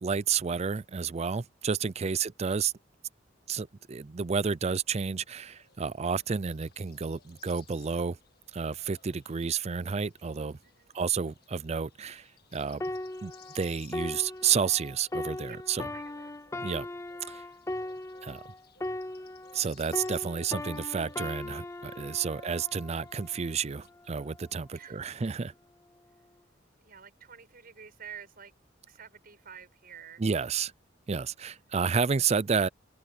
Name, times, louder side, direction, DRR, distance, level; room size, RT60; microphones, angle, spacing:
voice 1, 0.0-2.7 3.5-8.2 8.5-10.6 10.9-12.8 13.2-15.8 16.6-16.9 17.3-17.4 18.2-18.4 19.5-25.5 30.2-30.7 31.1-32.7, right 6 dB, 35° right, 0.5 m, -30 dB
sound 1, 5.5-23.9, left 7 dB, 55° left, 2.0 m, -61 dB
voice 2, 10.6-11.0 15.4-15.6 15.9-16.3 24.7-25.0 26.1-26.3 26.8-28.5 28.9-30.2, right 8 dB, 55° right, 6.1 m, -50 dB
sound 2, 12.8-19.7 19.9-23.5 24.2-24.4, left 1 dB, 15° left, 0.6 m, -38 dB
open air
head